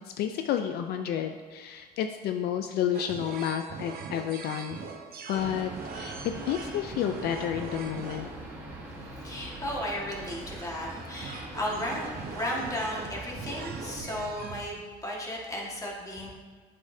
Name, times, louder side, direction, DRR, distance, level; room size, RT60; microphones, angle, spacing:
voice 1, 0.2-4.8 5.3-5.7 6.0-6.2 6.5-8.3, left 9 dB, 70° left, 6 dB, 0.4 m, -30 dB
sound 1, 2.9-14.6, right 6 dB, 60° right, 0.6 m, -42 dB
sound 2, 5.3-14.0, right 1 dB, 10° right, 1.3 m, -43 dB
voice 2, 9.0-16.3, left 1 dB, 20° left, -3 dB, 1.6 m, -35 dB
8.2 x 5.4 x 2.7 m, 1.5 s
cardioid pair, 110°, 17 cm